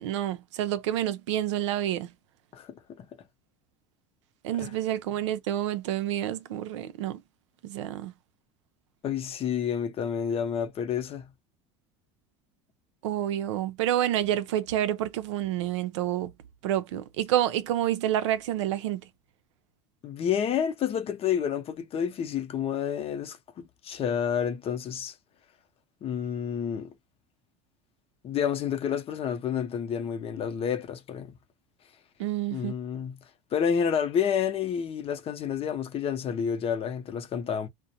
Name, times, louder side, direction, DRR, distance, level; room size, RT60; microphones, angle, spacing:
voice 1, 0.0-2.1 4.4-7.2 7.6-8.1 13.0-16.3 16.6-19.0 32.2-32.7, right 12 dB, 85° right, 0.5 m, -28 dB
voice 2, 2.5-3.1 4.6-4.7 9.0-11.3 20.0-25.2 26.0-26.9 28.2-31.3 32.5-33.2 33.5-37.7, left 8 dB, 40° left, 0.7 m, -29 dB
2.5 x 2.1 x 2.8 m
supercardioid pair, 90°, 15 cm